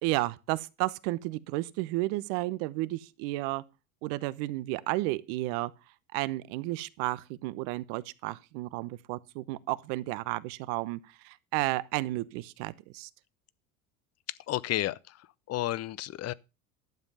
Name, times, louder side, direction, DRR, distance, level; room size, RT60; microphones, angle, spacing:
voice 1, 0.0-3.6 4.0-5.7 6.1-13.1, right 19 dB, 60° right, 1.0 m, -32 dB
voice 2, 14.5-16.3, left 15 dB, 40° left, 0.7 m, -32 dB
12.0 x 7.2 x 5.4 m
hypercardioid pair, 85°, 41 cm